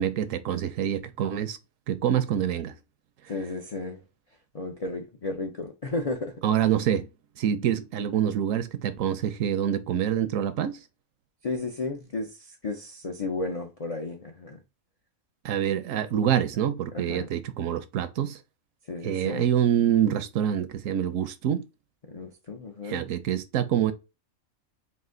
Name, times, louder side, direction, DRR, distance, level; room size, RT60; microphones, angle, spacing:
voice 1, 0.0-1.6 1.9-2.7 6.4-7.1 7.4-10.8 15.4-18.4 19.0-21.6 22.8-23.9, right 10 dB, 70° right, 0.9 m, -26 dB
voice 2, 3.3-4.0 4.5-6.3 11.4-14.6 16.9-17.3 18.9-19.5 22.0-23.1, left 3 dB, 55° left, 0.4 m, -33 dB
4.1 x 2.5 x 3.8 m
omnidirectional pair, 1.5 m